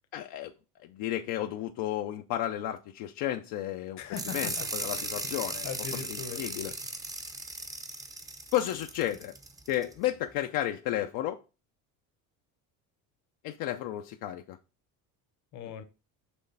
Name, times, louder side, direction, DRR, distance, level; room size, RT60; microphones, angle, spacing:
voice 1, 0.1-0.5 0.8-4.0 4.3-5.7 6.1-6.7 8.5-9.3 9.7-11.4 13.4-14.6, left 12 dB, 75° left, 0.6 m, -32 dB
voice 2, 4.0-4.7 5.2-5.3 5.6-6.5 15.5-15.8, left 7 dB, 55° left, 0.9 m, -39 dB
sound 1, 4.1-9.9, right 2 dB, 10° right, 0.6 m, -37 dB
6.3 x 3.1 x 5.5 m
cardioid pair, 130°, 35 cm